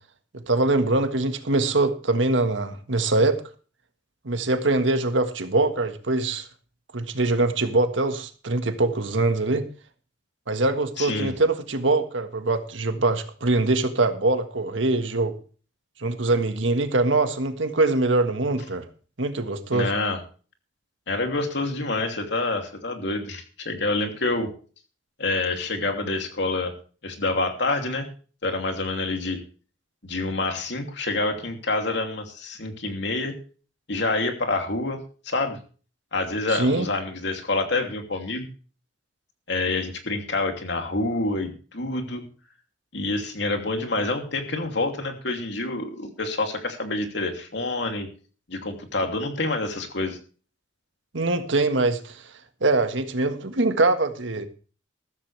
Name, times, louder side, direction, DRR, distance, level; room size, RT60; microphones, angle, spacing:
voice 1, 0.3-3.4 4.2-6.5 6.9-9.6 10.5-15.4 16.0-18.9 19.2-19.9 36.5-36.9 51.1-52.3 52.6-54.4, right 2 dB, 85° right, 1.7 m, -23 dB
voice 2, 11.0-11.3 19.7-20.2 21.1-24.5 25.2-26.7 27.0-28.1 28.4-29.4 30.0-33.4 33.9-35.6 36.1-38.5 39.5-42.3 42.9-48.1 48.5-50.2, left 2 dB, 65° left, 2.8 m, -27 dB
14.0 x 13.5 x 3.4 m
head